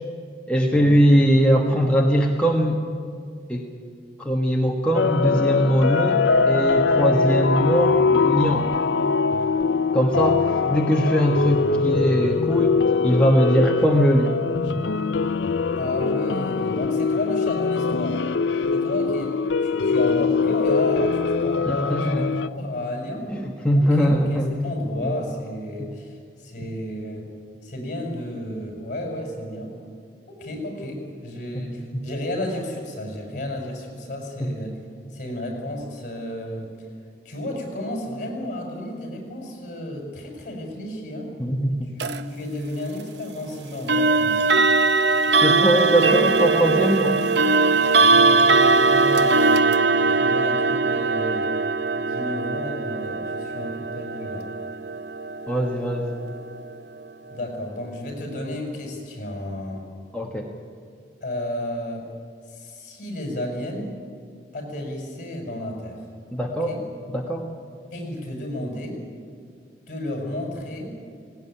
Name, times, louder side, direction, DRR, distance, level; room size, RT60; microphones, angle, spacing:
voice 1, 0.5-2.8 3.5-3.7 4.2-8.8 9.9-12.8 13.0-14.4 21.7-22.4 23.3-24.5 33.3-33.4 34.4-34.5 41.4-41.7 45.4-47.2 55.5-56.1 60.1-60.5 66.3-66.7 67.1-67.5, equal, 5° left, -1 dB, 1.3 m, -21 dB
sound 1, 4.9-22.5, left 4 dB, 85° left, 0.6 m, -22 dB
voice 2, 15.8-18.2 18.7-19.3 19.6-22.0 22.4-23.3 23.7-27.3 27.6-29.7 30.3-34.8 35.1-36.7 37.2-41.3 41.9-44.4 47.9-49.6 50.0-51.5 51.9-54.5 57.3-59.8 61.2-62.1 62.5-63.9 64.5-66.0 66.5-66.8 67.9-69.0 69.9-71.0, left 1 dB, 45° left, 1 dB, 6.1 m, -32 dB
sound 2, 42.0-42.2 43.9-56.7, right 3 dB, 75° right, 0.8 m, -20 dB
18.5 x 18.0 x 10.0 m, 2.2 s
head